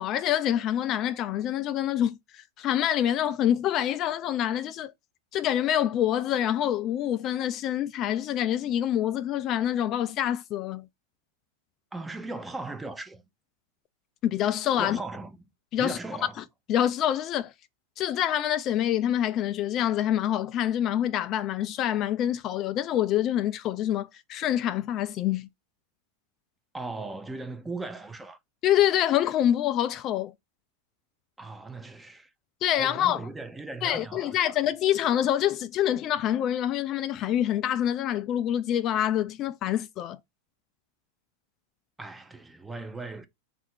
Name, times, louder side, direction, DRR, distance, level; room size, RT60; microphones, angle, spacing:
voice 1, 0.0-4.9 5.3-10.9 14.2-15.0 15.7-16.0 16.7-17.5 18.0-25.5 28.6-30.3 32.6-33.3 33.8-40.2, left 11 dB, 40° left, 0.3 m, -26 dB
voice 2, 11.9-13.2 14.8-15.4 15.8-16.4 26.7-28.4 31.4-32.3 32.8-34.3 42.0-43.3, right 3 dB, 10° right, 0.6 m, -38 dB
4.3 x 2.5 x 4.3 m
hypercardioid pair, 120°, 0 cm